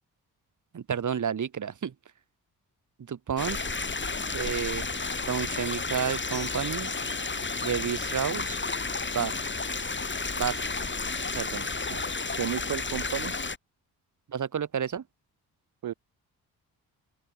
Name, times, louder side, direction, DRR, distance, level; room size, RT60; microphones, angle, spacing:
voice 1, 0.7-1.9 3.0-3.7 4.3-4.8 5.3-6.9 7.6-8.6 9.1-9.4 10.4-10.6 11.3-12.1 14.3-15.0, right 7 dB, 50° right, 2.4 m, -31 dB
sound 1, 3.4-13.6, left 4 dB, 30° left, 4.9 m, -32 dB
voice 2, 12.3-13.3 15.8-15.9, right 11 dB, 65° right, 1.6 m, -32 dB
open air
supercardioid pair, 60°, 38 cm